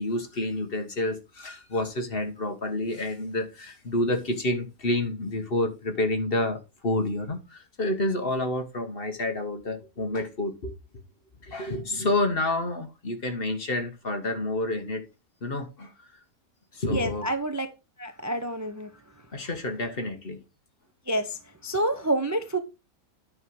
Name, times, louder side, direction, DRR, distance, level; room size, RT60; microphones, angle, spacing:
voice 1, 0.0-10.7 11.4-15.0 15.4-15.9 16.7-17.3 19.3-20.4, left 2 dB, 40° left, 1.5 m, -29 dB
voice 2, 16.9-17.7 18.0-18.9 21.1-22.6, right 1 dB, 20° right, 0.6 m, -28 dB
9.5 x 5.6 x 4.7 m
omnidirectional pair, 1.5 m